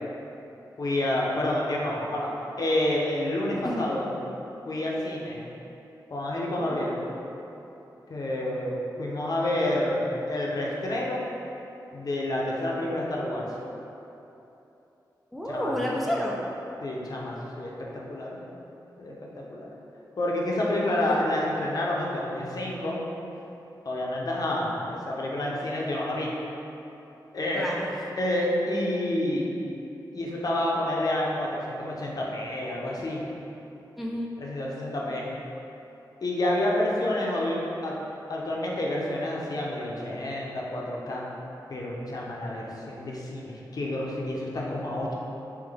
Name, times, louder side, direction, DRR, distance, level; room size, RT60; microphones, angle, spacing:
voice 1, 0.8-2.3 2.6-4.1 4.6-5.4 6.1-7.0 8.1-11.2 11.9-13.5 15.5-15.7 16.8-17.7 18.1-18.4 19.0-19.7 20.2-23.0 23.8-26.3 27.3-27.7 28.2-29.5 30.1-33.2 34.4-35.3 36.2-38.0 38.3-41.2 41.7-45.1, left 1 dB, 55° left, -3 dB, 0.6 m, -29 dB
voice 2, 6.5-6.8 15.3-16.4 20.8-21.3 27.5-27.9 34.0-34.3, equal, ahead, -3 dB, 0.4 m, -31 dB
3.7 x 2.9 x 3.4 m, 3.0 s
wide cardioid pair, 95°, 8 cm